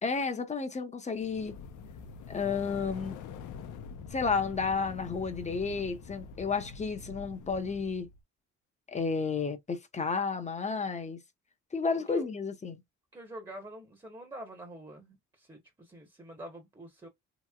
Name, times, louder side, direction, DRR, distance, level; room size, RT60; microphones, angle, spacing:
voice 1, 0.0-1.5 2.3-3.2 4.1-8.1 8.9-11.2 11.7-12.8, left 5 dB, 25° left, 0.8 m, -32 dB
sound 1, 1.2-8.2, left 6 dB, 85° left, 0.7 m, -45 dB
voice 2, 11.9-12.3 13.1-17.1, right 1 dB, 15° right, 1.0 m, -46 dB
3.0 x 2.9 x 2.3 m
cardioid pair, 90°, 30 cm